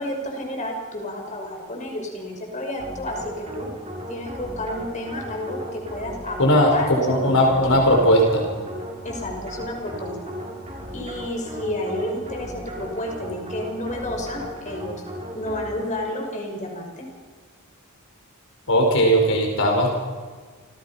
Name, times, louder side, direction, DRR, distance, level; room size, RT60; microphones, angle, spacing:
voice 1, 0.0-3.7 4.1-6.9 7.2-7.7 9.0-10.3 10.9-15.0 15.3-17.0, left 1 dB, 35° left, 2 dB, 5.8 m, -31 dB
sound 1, 2.8-16.0, equal, 30° right, 6.1 m, -36 dB
voice 2, 6.4-8.4 18.7-20.0, equal, 60° left, 1 dB, 4.9 m, -18 dB
29.5 x 27.5 x 5.8 m, 1.5 s
head